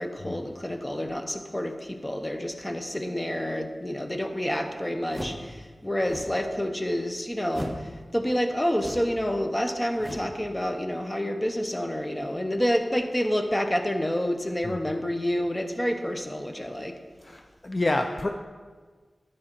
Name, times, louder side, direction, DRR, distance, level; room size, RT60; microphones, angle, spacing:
voice 1, 0.0-17.0, equal, 15° left, 6 dB, 0.8 m, -28 dB
sound 1, 5.1-5.5 6.0-6.4 7.5-7.9 8.7-9.2 10.0-10.4, equal, 5° right, 1.0 m, -37 dB
voice 2, 17.2-18.3, left 2 dB, 40° left, 5 dB, 0.4 m, -28 dB
11.5 x 4.9 x 4.4 m, 1.5 s
wide cardioid pair, 70°, 0 cm